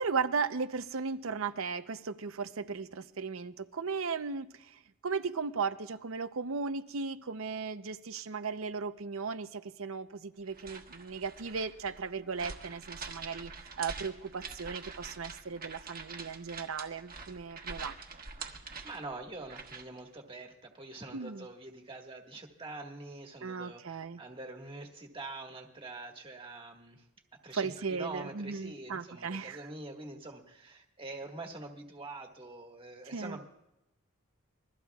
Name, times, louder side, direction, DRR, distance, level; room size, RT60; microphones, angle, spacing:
voice 1, 0.0-17.9 21.1-21.5 23.4-24.2 27.5-29.6 33.1-33.4, right 5 dB, 70° right, 0.7 m, -36 dB
sound 1, 10.5-20.0, right 4 dB, 45° right, 1.4 m, -45 dB
voice 2, 18.4-27.1 27.4-33.4, right 2 dB, 25° right, 1.6 m, -45 dB
26.5 x 21.5 x 2.4 m
head